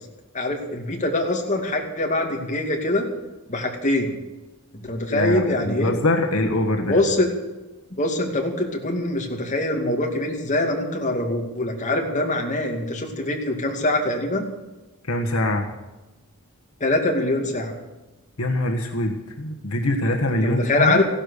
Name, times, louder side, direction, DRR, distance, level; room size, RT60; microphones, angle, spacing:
voice 1, 0.3-3.1 3.5-4.2 4.8-5.9 6.8-7.3 7.9-14.5 16.8-17.8 20.4-21.0, left 2 dB, 35° left, 1 dB, 2.5 m, -23 dB
voice 2, 5.1-7.0 15.0-15.7 18.4-21.0, left 1 dB, 75° left, 3 dB, 1.6 m, -23 dB
15.5 x 12.0 x 6.7 m, 1.1 s
head